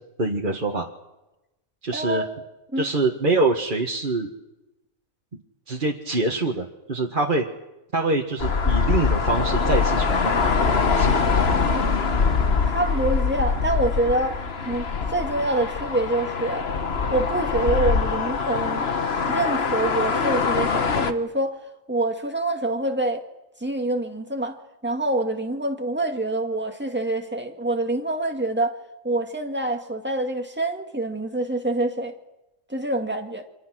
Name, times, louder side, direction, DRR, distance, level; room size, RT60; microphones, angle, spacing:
voice 1, 0.2-0.9 1.8-2.2 2.8-4.3 5.7-7.5 7.9-10.4 10.7-11.9, right 2 dB, 40° right, 0 dB, 1.8 m, -25 dB
voice 2, 1.9-2.3 2.7-2.9 12.6-14.4 14.6-16.7 17.1-18.9 19.3-21.6 21.9-23.2 23.6-24.6 24.8-28.7 29.0-32.1 32.7-33.5, right 2 dB, 10° right, 4 dB, 2.0 m, -26 dB
sound 1, 8.4-21.1, left 5 dB, 55° left, 1.5 m, -23 dB
29.5 x 25.5 x 6.2 m, 0.98 s
omnidirectional pair, 1.3 m